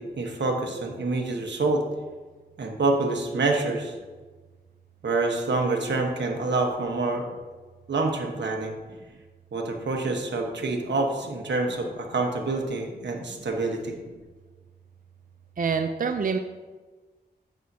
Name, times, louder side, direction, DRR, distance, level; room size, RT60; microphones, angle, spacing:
voice 1, 0.0-1.8 2.6-3.9 5.0-7.2 7.9-8.7 9.5-14.0, right 3 dB, 85° right, 2 dB, 1.2 m, -27 dB
voice 2, 15.6-16.4, right 5 dB, 50° right, 6 dB, 0.5 m, -26 dB
10.5 x 7.8 x 2.8 m, 1.3 s
wide cardioid pair, 70°, 18 cm